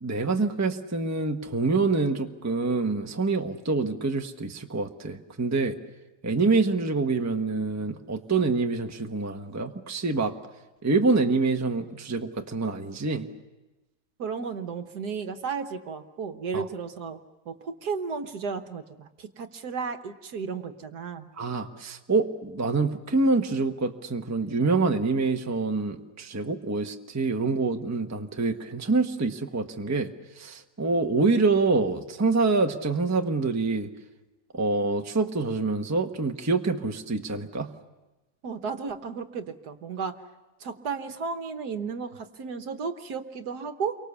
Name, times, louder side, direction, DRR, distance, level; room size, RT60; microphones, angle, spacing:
voice 1, 0.0-5.7 6.2-10.3 10.8-13.3 16.5-16.6 21.4-33.9 34.5-37.7, right 3 dB, 10° right, 5 dB, 0.9 m, -26 dB
voice 2, 14.2-17.2 17.5-21.3 38.4-40.2 40.6-44.0, right 5 dB, 65° right, 8 dB, 1.6 m, -34 dB
29.5 x 24.0 x 7.1 m, 1.1 s
omnidirectional pair, 1.9 m